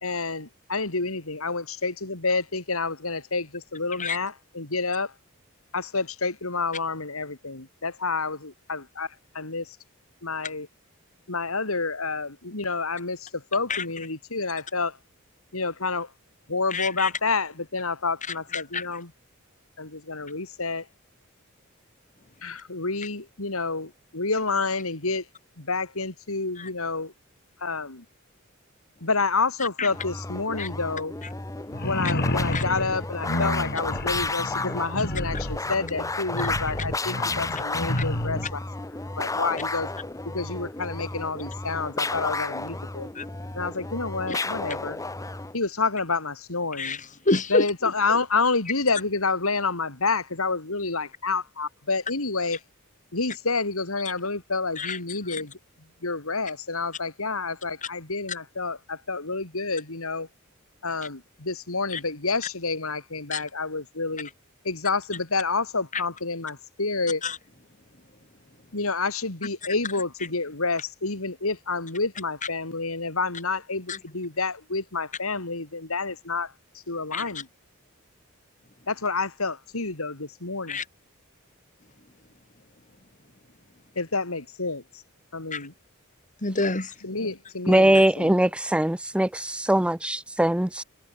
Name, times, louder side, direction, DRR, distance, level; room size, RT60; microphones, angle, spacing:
voice 1, 0.0-5.1 5.7-9.8 10.2-10.7 11.3-15.0 15.5-16.1 16.5-19.1 19.8-20.9 22.4-25.3 25.6-27.1 27.6-28.0 29.0-31.1 31.8-38.6 39.2-39.9 40.3-43.1 43.5-45.0 45.5-47.0 47.5-52.6 53.1-55.5 56.0-60.3 60.8-64.3 64.6-67.2 68.7-77.5 78.9-80.8 83.9-85.0 85.3-85.7 87.0-88.4, left 3 dB, 80° left, 3.3 m, -29 dB
voice 2, 16.7-17.1 18.5-18.8 26.6-26.7 29.8-29.9 30.6-30.7 32.0-32.1 32.5-32.6 36.4-36.5 37.9-38.0 43.1-43.3 44.3-44.4 46.8-47.7 54.8-55.0 55.3-55.4 61.9-62.0 63.3-63.4 65.9-66.0 67.2-67.4 73.9-74.0 77.1-77.3 80.7-80.8 85.5-85.7 86.4-87.0 87.9-88.0, left 3 dB, 35° left, 3.3 m, -28 dB
sound 1, 29.9-45.6, left 3 dB, 15° left, 1.1 m, -33 dB
sound 2, 31.7-38.5, left 1 dB, 55° left, 4.6 m, -30 dB
voice 3, 87.7-90.8, right 1 dB, 5° right, 0.5 m, -21 dB
head